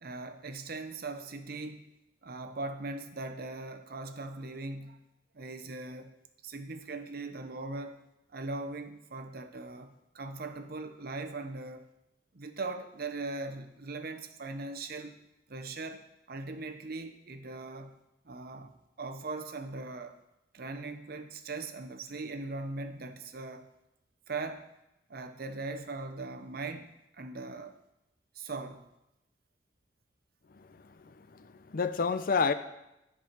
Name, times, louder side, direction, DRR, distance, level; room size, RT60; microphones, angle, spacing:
voice 1, 0.0-1.8 2.2-5.0 5.3-6.2 6.4-8.0 8.3-11.9 12.3-15.2 15.5-18.0 18.2-18.7 19.0-20.2 20.5-23.7 24.3-24.7 25.1-27.7 28.3-28.9, right 3 dB, 55° right, 7 dB, 0.8 m, -40 dB
voice 2, 31.3-32.5, left 5 dB, 50° left, 11 dB, 0.5 m, -29 dB
10.5 x 4.7 x 5.9 m, 0.90 s
head